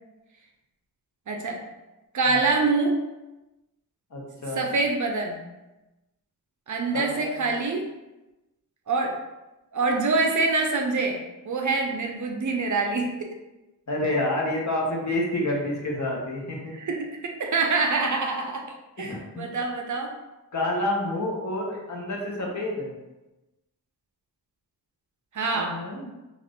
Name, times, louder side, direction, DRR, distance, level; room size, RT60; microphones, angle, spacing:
voice 1, 1.3-1.6 2.1-3.0 4.6-5.4 6.7-7.9 8.9-9.1 9.7-11.2 11.4-13.4 16.7-18.6 19.0-20.1 25.3-25.7, right 3 dB, 50° right, 2 dB, 0.5 m, -25 dB
voice 2, 4.1-4.7 6.9-7.5 13.9-16.7 19.0-19.5 20.5-22.9 25.5-26.1, left 1 dB, 45° left, -2 dB, 0.8 m, -29 dB
2.4 x 2.4 x 3.4 m, 1.0 s
cardioid pair, 60°, 39 cm